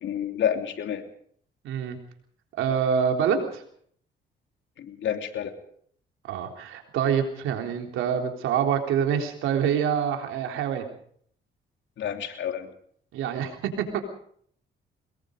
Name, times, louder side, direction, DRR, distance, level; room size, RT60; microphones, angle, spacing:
voice 1, 0.0-1.0 4.8-5.5 12.0-12.7, left 9 dB, 70° left, 5 dB, 3.2 m, -29 dB
voice 2, 1.6-2.0 2.6-3.6 6.2-10.9 13.1-13.5 13.8-14.0, right 8 dB, 90° right, 4 dB, 3.7 m, -26 dB
23.5 x 21.0 x 5.3 m, 0.62 s
cardioid pair, 90°, 20 cm